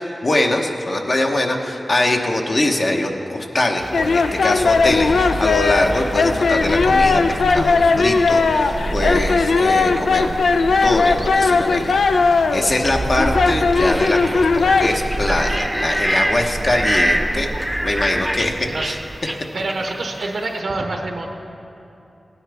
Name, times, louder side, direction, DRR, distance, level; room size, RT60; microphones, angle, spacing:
voice 1, 0.0-10.3 10.8-12.0 12.5-17.5 17.8-18.6 18.8-19.0, left 1 dB, 50° left, 1 dB, 0.9 m, -22 dB
sound 1, 3.8-20.6, equal, 5° right, 0.7 m, -29 dB
sound 2, 3.9-14.9, left 4 dB, 90° left, 0.4 m, -18 dB
sound 3, 4.6-19.2, right 2 dB, 35° right, 0.4 m, -30 dB
voice 2, 18.6-19.0 19.5-21.3, right 2 dB, 80° right, 2 dB, 1.1 m, -26 dB
16.5 x 9.7 x 3.4 m, 2.8 s
wide cardioid pair, 65°, 0 cm